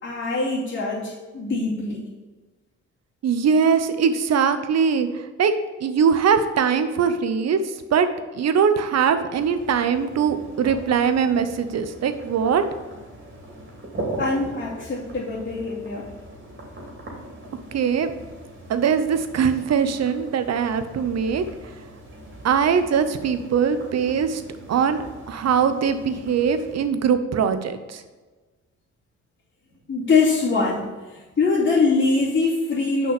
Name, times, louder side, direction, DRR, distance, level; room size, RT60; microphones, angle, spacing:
voice 1, 0.0-2.1 14.2-16.1 29.9-33.1, left 4 dB, 40° left, -9 dB, 2.7 m, -23 dB
voice 2, 3.2-5.5 5.8-7.6 7.9-8.1 8.3-12.6 17.7-18.1 18.7-21.4 22.4-24.4 24.7-28.0, right 7 dB, 60° right, 10 dB, 0.9 m, -21 dB
sound 1, 9.3-26.9, right 1 dB, 40° right, 2.9 m, -40 dB
6.5 x 5.5 x 6.8 m, 1.3 s
cardioid pair, 90°, 30 cm